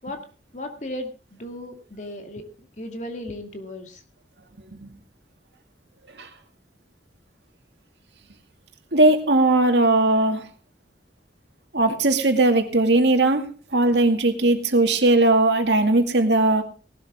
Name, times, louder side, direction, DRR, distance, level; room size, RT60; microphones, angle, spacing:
voice 1, 0.5-2.4 2.8-4.0, left 1 dB, 40° left, 5 dB, 2.2 m, -35 dB
voice 2, 8.9-10.4 11.7-13.5 13.7-16.6, right 2 dB, 85° right, 5 dB, 2.3 m, -18 dB
18.5 x 12.5 x 3.7 m, 0.36 s
head